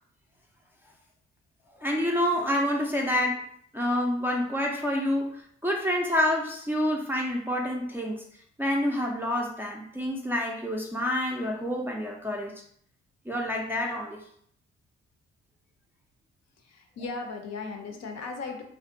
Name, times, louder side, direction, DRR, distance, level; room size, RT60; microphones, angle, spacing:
voice 1, 1.8-3.5 3.7-8.2 8.6-12.5 13.3-14.2, left 1 dB, 5° right, -1 dB, 0.4 m, -28 dB
voice 2, 16.6-18.6, left 4 dB, 60° left, 4 dB, 0.6 m, -37 dB
2.5 x 2.2 x 2.5 m, 0.64 s
cardioid pair, 70°, 30 cm